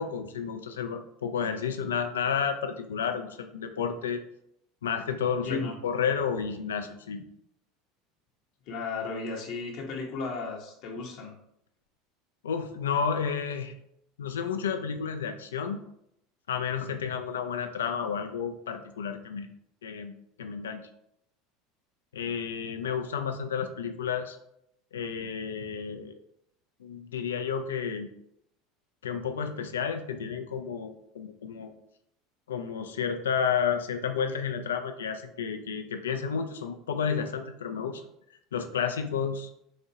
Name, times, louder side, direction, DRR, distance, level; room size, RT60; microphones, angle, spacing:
voice 1, 0.0-4.2 4.8-7.2 12.4-13.7 14.2-15.8 16.5-19.5 19.8-20.1 20.4-20.9 22.1-24.4 24.9-26.2 26.8-28.1 29.0-31.7 32.5-38.0 38.5-39.5, left 7 dB, 90° left, 6 dB, 0.4 m, -31 dB
voice 2, 5.3-5.8 8.7-11.3, left 4 dB, 60° left, -1 dB, 0.8 m, -35 dB
4.1 x 2.4 x 2.7 m, 0.76 s
hypercardioid pair, 85°, 0 cm